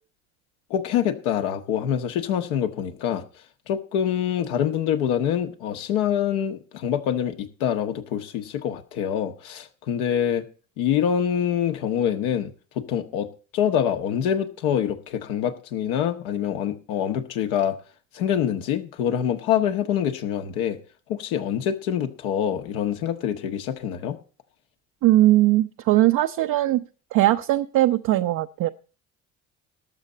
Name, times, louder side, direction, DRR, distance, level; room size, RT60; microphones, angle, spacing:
voice 1, 0.7-3.2 3.7-10.4 10.8-13.3 13.5-17.8 18.1-20.8 21.1-24.2, left 9 dB, 70° left, 6 dB, 1.6 m, -25 dB
voice 2, 25.0-26.8 27.1-28.7, right 15 dB, 50° right, 7 dB, 0.7 m, -19 dB
18.5 x 7.3 x 4.0 m, 0.38 s
hypercardioid pair, 60°, 42 cm